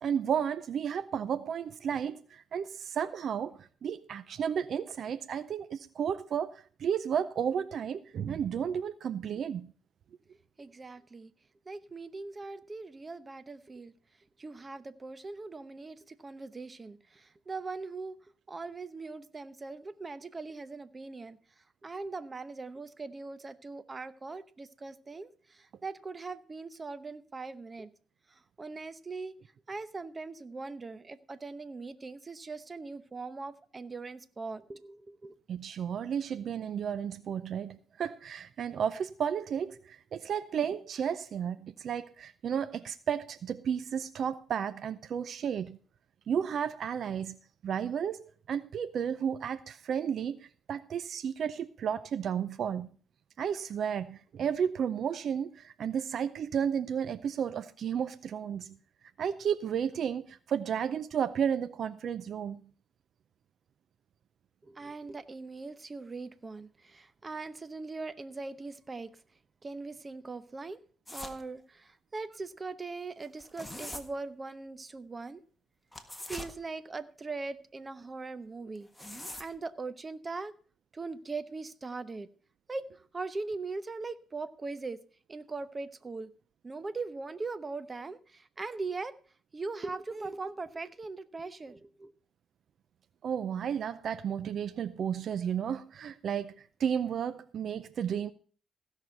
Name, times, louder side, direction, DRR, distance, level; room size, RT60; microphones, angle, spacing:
voice 1, 0.0-9.7 35.5-45.8 46.3-47.4 47.6-48.2 48.5-52.9 53.4-58.8 59.2-62.6 93.2-98.3, right 8 dB, 60° right, 0.5 m, -33 dB
voice 2, 10.6-11.3 11.7-13.9 14.4-27.9 28.3-29.3 29.7-35.4 64.6-69.1 69.6-70.8 71.1-75.4 76.3-80.5 80.9-82.3 82.7-82.9 83.1-85.0 85.3-86.3 86.6-89.1 89.5-92.1, right 3 dB, 30° right, 0.8 m, -40 dB
sound 1, 71.1-71.4 73.2-74.0 75.9-76.5 78.7-79.5, left 1 dB, 5° left, 1.5 m, -42 dB
16.0 x 6.2 x 5.5 m
cardioid pair, 90°, 0 cm